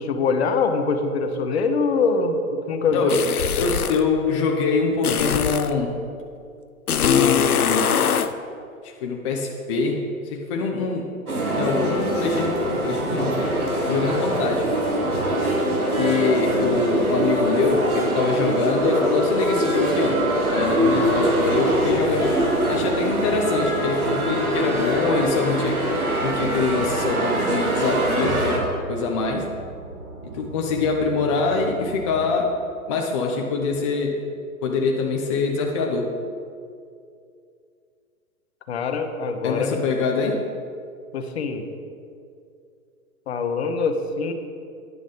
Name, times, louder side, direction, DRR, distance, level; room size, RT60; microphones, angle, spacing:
voice 1, 0.0-3.2 38.7-39.7 41.1-41.6 43.3-44.3, left 4 dB, 45° left, 6 dB, 0.9 m, -23 dB
sound 1, 3.1-4.0 5.0-5.8 6.9-8.3, left 7 dB, 80° left, 0.6 m, -21 dB
voice 2, 3.6-6.0 7.0-8.1 8.8-10.1 10.3-11.1 11.6-13.5 13.8-14.8 16.0-22.4 22.7-25.8 26.2-29.5 30.2-34.2 34.6-36.1 39.4-40.5, left 4 dB, 20° left, 1 dB, 0.5 m, -24 dB
sound 2, 11.3-28.6, right 1 dB, 80° right, 1.9 m, -23 dB
sound 3, 20.9-32.2, right 3 dB, 55° right, 1.7 m, -39 dB
9.6 x 6.2 x 5.1 m, 2.4 s
figure-of-eight pair, 115°, 44 cm